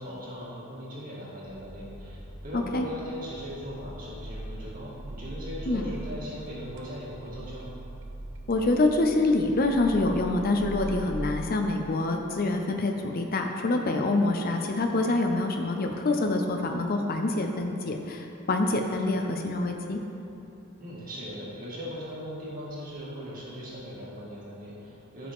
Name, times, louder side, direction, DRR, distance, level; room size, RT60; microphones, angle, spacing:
voice 1, 0.0-7.8 20.8-25.3, equal, 40° right, -6 dB, 2.1 m, -39 dB
sound 1, 1.4-11.4, right 1 dB, 55° right, 0.7 m, -41 dB
voice 2, 2.5-2.9 5.7-5.9 8.5-20.0, left 2 dB, 40° left, 4 dB, 0.5 m, -26 dB
14.5 x 4.9 x 3.6 m, 2.9 s
head